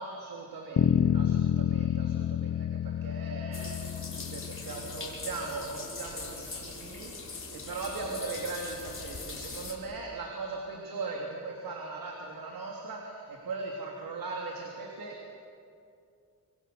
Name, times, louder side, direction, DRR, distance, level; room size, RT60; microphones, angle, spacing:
voice 1, 0.0-15.4, right 3 dB, 85° right, -1 dB, 3.6 m, -39 dB
sound 1, 0.8-5.1, left 9 dB, 55° left, 1.0 m, -28 dB
sound 2, 3.5-9.7, left 4 dB, 35° left, 4.8 m, -41 dB
27.0 x 25.0 x 7.0 m, 2.4 s
wide cardioid pair, 130°, 34 cm